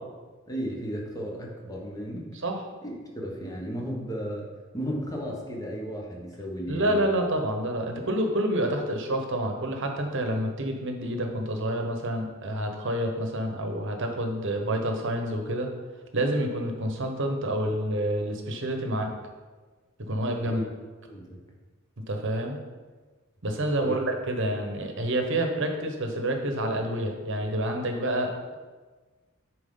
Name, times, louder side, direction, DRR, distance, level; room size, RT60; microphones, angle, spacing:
voice 1, 0.5-2.3 2.8-4.5 4.7-7.0 20.4-20.6 21.0-21.4 23.7-24.0, equal, 15° left, -1 dB, 1.2 m, -34 dB
voice 2, 6.7-15.7 16.1-19.1 20.0-20.6 22.1-22.6 23.4-28.5, right 1 dB, 60° right, 4 dB, 1.0 m, -28 dB
10.0 x 4.7 x 3.8 m, 1.4 s
head